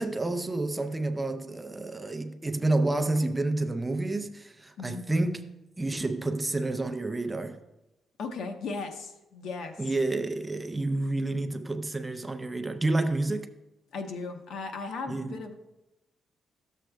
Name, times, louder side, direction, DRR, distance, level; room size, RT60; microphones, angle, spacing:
voice 1, 0.0-5.5 5.8-7.6 9.8-13.5 15.1-15.3, right 2 dB, 15° right, 0.5 m, -29 dB
voice 2, 8.2-9.8 13.9-15.5, left 4 dB, 80° left, 0.9 m, -36 dB
12.5 x 7.3 x 2.2 m
wide cardioid pair, 155°, 0 cm